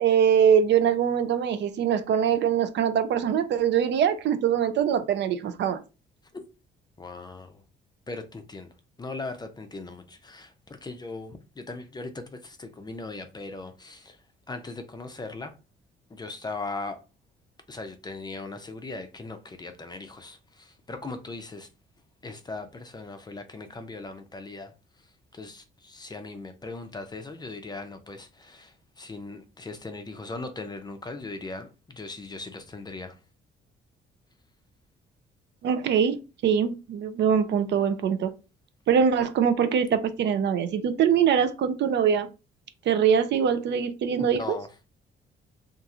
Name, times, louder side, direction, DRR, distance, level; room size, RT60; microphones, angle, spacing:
voice 1, 0.0-5.8 35.6-38.3 38.9-42.3 42.9-44.6, right 8 dB, 65° right, 0.4 m, -23 dB
voice 2, 7.0-7.6 8.1-8.7 9.0-14.2 14.5-15.5 16.1-17.0 17.7-21.7 22.2-24.7 25.3-33.2 44.3-44.7, left 3 dB, 20° left, 0.5 m, -39 dB
2.9 x 2.4 x 2.4 m
cardioid pair, 90°, 20 cm